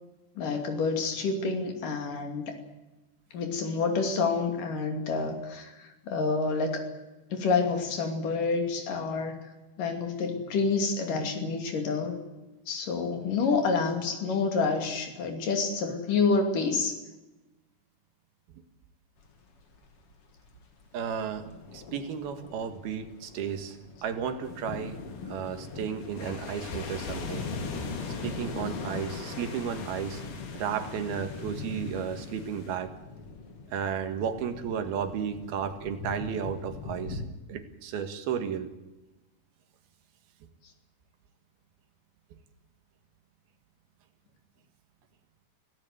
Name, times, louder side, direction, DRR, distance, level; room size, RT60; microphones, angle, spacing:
voice 1, 0.4-2.5 3.3-6.9 7.3-9.4 9.8-12.2 12.7-17.0, left 4 dB, 60° left, 5 dB, 4.2 m, -28 dB
sound 1, 19.2-37.2, left 4 dB, 40° left, 2.8 m, -42 dB
voice 2, 20.9-21.5 21.7-25.0 25.2-27.5 28.2-30.2 30.5-32.9 33.7-37.2 37.5-38.7, right 7 dB, 85° right, 8 dB, 3.6 m, -33 dB
sound 2, 24.5-32.8, left 4 dB, 75° left, 4.6 m, -41 dB
26.5 x 17.0 x 8.1 m, 1.1 s
omnidirectional pair, 4.3 m